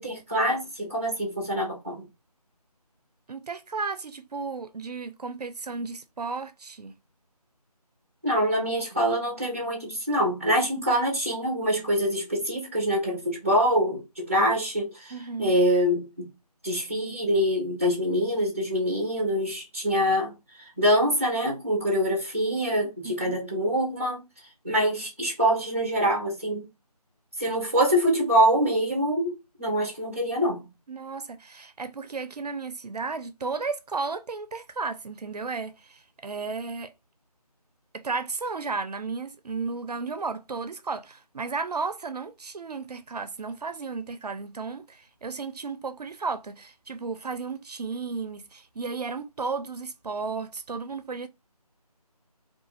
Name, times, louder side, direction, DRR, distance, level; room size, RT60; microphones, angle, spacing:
voice 1, 0.0-2.0 8.2-16.3 16.6-20.3 20.8-24.2 24.6-26.7 27.4-30.6, equal, 20° right, 0.5 m, -25 dB
voice 2, 3.3-6.9 15.1-15.6 23.0-23.4 30.9-36.9 37.9-51.3, right 4 dB, 75° right, 0.4 m, -34 dB
2.3 x 2.3 x 3.0 m
figure-of-eight pair, 165°, 20 cm